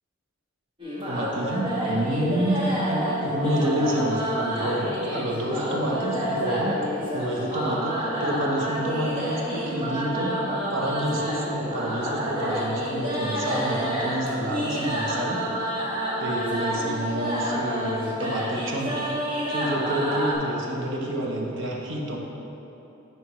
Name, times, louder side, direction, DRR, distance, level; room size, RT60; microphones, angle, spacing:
sound 1, 0.8-20.4, equal, 25° right, 1.3 m, -29 dB
voice 1, 1.1-6.8 7.1-10.4 10.7-15.4 16.2-19.1 19.5-22.2, right 1 dB, 65° right, -1 dB, 1.0 m, -28 dB
10.0 x 4.3 x 3.1 m, 3.0 s
head